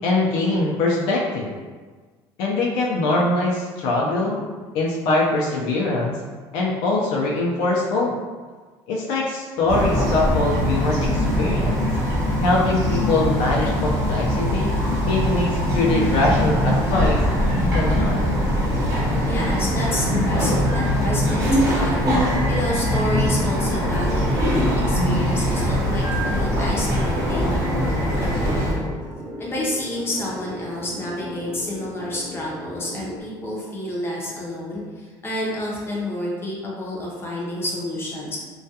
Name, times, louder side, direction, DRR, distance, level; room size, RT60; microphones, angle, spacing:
voice 1, 0.0-1.5 2.4-4.4 4.7-6.2 6.5-8.1 8.9-11.9 12.4-14.7 15.1-17.2 17.7-18.2, left 2 dB, 80° left, -3 dB, 0.5 m, -22 dB
Bird vocalization bird call bird song, 9.7-28.8, equal, 35° right, 0.8 m, -22 dB
sound 1, 17.7-33.2, equal, 75° right, 0.7 m, -37 dB
voice 2, 19.3-22.0 22.5-28.9 29.4-38.4, left 1 dB, 25° left, -4 dB, 0.6 m, -29 dB
2.3 x 2.3 x 2.7 m, 1.4 s
cardioid pair, 120°, 9 cm